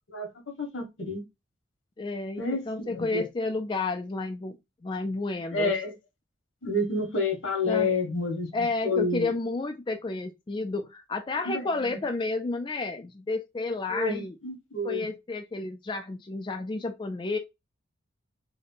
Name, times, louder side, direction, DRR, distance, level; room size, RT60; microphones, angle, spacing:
voice 1, 0.1-1.2 2.4-3.2 5.5-5.9 6.6-9.3 11.5-12.0 13.9-15.1, left 3 dB, 80° left, 1.3 m, -29 dB
voice 2, 2.0-4.6 4.8-5.7 7.7-7.9 8.5-14.3 14.8-17.4, left 3 dB, 25° left, 0.3 m, -31 dB
3.4 x 2.1 x 3.8 m
head